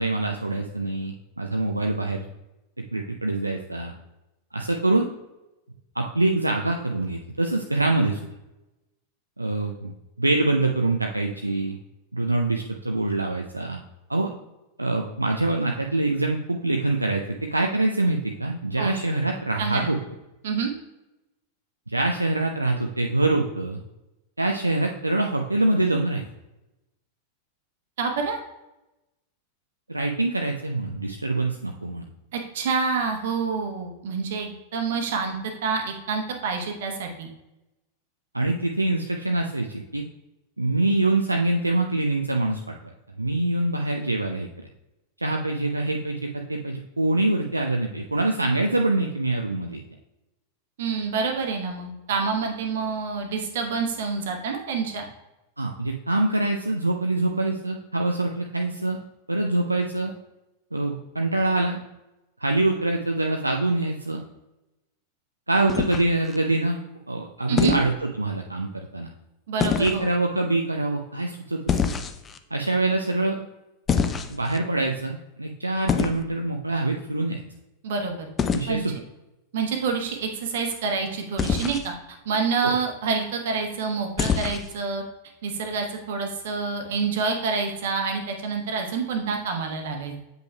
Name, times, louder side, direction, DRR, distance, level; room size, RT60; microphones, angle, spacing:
voice 1, 0.0-2.2 2.9-3.9 4.5-5.1 6.0-8.2 9.4-9.9 10.2-11.8 12.1-13.8 14.1-14.3 14.8-20.0 21.9-23.8 24.4-26.2 29.9-32.0 38.3-40.0 40.6-42.7 43.2-44.5 45.2-49.8 55.6-59.0 59.3-60.1 60.7-61.8 62.4-64.2 65.5-66.8 67.1-69.1 69.8-71.9 72.5-73.5 74.3-77.4 78.5-79.0 82.6-82.7, right 2 dB, 85° right, 2 dB, 0.4 m, -25 dB
voice 2, 19.6-19.9 20.4-20.7 28.0-28.4 32.3-37.3 50.8-55.0 67.5-67.8 69.5-70.0 77.8-78.3 78.7-78.8 79.5-81.9 82.2-85.0 85.4-90.2, right 5 dB, 55° right, 4 dB, 1.1 m, -27 dB
sound 1, 65.7-66.4 67.6-67.9 69.6-70.0 71.7-72.4 73.9-74.6 75.9-76.2 78.4-78.7 81.4-81.9 84.2-84.7, left 6 dB, 20° left, 0.5 m, -25 dB
7.7 x 5.4 x 2.3 m, 0.96 s
figure-of-eight pair, 90°, 0 cm